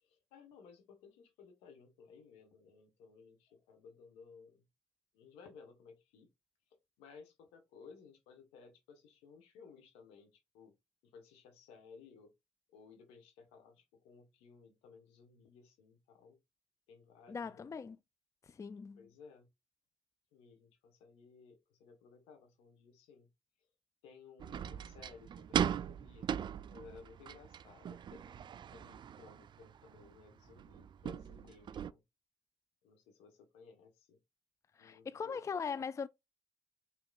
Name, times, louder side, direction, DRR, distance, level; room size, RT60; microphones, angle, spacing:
voice 1, 0.0-4.6 5.1-6.3 7.0-10.7 11.0-12.3 12.7-16.4 16.9-17.7 19.0-19.5 20.3-23.3 24.0-26.3 26.7-28.4 28.7-32.0 32.8-34.2 34.8-35.5, left 5 dB, 90° left, 1.1 m, -58 dB
voice 2, 17.3-18.0 18.4-19.0 34.8-36.1, left 6 dB, 35° left, 0.3 m, -40 dB
sound 1, 24.4-31.9, right 8 dB, 55° right, 0.3 m, -40 dB
5.1 x 3.0 x 2.3 m
hypercardioid pair, 45°, 10 cm